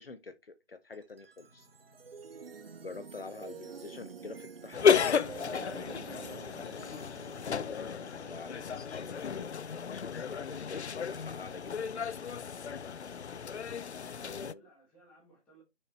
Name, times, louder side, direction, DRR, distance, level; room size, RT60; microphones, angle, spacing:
voice 1, 0.0-1.7 2.7-5.2 7.4-12.4 14.2-14.6, left 4 dB, 55° left, 1.0 m, -47 dB
sound 1, 0.9-10.2, right 5 dB, 55° right, 0.5 m, -49 dB
Engine / Mechanisms, 1.4-10.3, left 1 dB, 30° right, 2.6 m, -64 dB
voice 2, 3.2-3.8 6.7-7.2 13.9-15.6, right 3 dB, 5° left, 1.5 m, -61 dB
sound 2, 4.7-14.5, left 7 dB, 70° left, 0.5 m, -33 dB
6.3 x 6.3 x 3.1 m
figure-of-eight pair, 160°, 35 cm